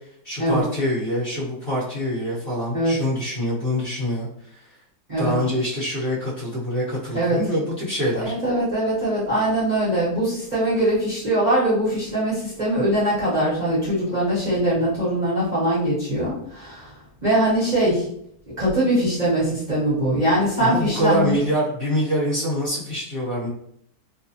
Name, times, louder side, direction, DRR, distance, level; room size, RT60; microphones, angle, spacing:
voice 1, 0.2-4.6 5.2-8.3 20.6-23.5, equal, 40° left, -9 dB, 1.2 m, -25 dB
voice 2, 8.1-16.9 17.2-18.1 18.6-21.4, right 1 dB, 30° right, -10 dB, 0.9 m, -22 dB
2.9 x 2.1 x 2.7 m, 0.70 s
omnidirectional pair, 1.7 m